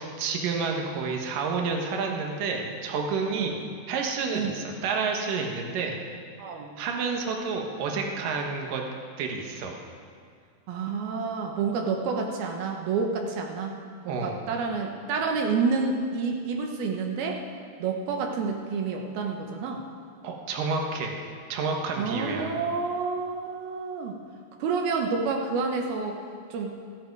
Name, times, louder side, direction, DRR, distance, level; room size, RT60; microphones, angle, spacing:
voice 1, 0.0-3.5 3.9-6.0 6.8-8.8 9.2-9.8 14.1-14.4 20.2-21.1 21.5-22.6, right 4 dB, 70° right, 1 dB, 3.0 m, -29 dB
voice 2, 6.4-6.7 10.7-13.8 14.0-17.4 17.8-19.9 22.0-24.2 24.6-26.2 26.5-26.7, right 4 dB, 85° right, 2 dB, 3.0 m, -29 dB
18.5 x 15.0 x 4.7 m, 2.2 s
omnidirectional pair, 4.2 m